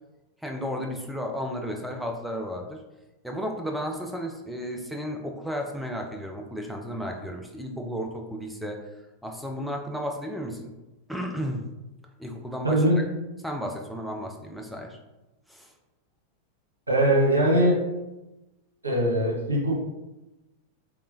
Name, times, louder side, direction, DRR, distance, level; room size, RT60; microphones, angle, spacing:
voice 1, 0.4-2.8 3.2-10.7 11.1-11.7 12.2-12.8 13.4-15.0 15.5-15.7, equal, ahead, 2 dB, 0.4 m, -33 dB
voice 2, 12.6-13.1 16.9-17.9 18.8-19.8, right 1 dB, 80° right, -3 dB, 0.9 m, -22 dB
3.5 x 3.1 x 2.6 m, 1.0 s
figure-of-eight pair, 90°, 0 cm